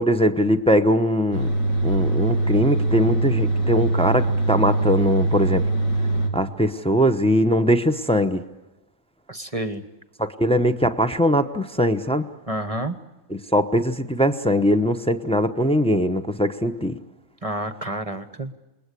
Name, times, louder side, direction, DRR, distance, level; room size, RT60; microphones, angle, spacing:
voice 1, 0.0-1.5 1.8-5.7 6.3-8.4 10.2-12.3 13.3-17.0, equal, 5° left, 6 dB, 0.5 m, -21 dB
sound 1, 1.3-6.3, right 2 dB, 70° left, 3.2 m, -22 dB
voice 2, 9.3-9.8 12.5-13.0 17.4-18.5, right 1 dB, 25° right, 11 dB, 0.9 m, -29 dB
28.5 x 21.0 x 8.4 m, 1.0 s
omnidirectional pair, 2.0 m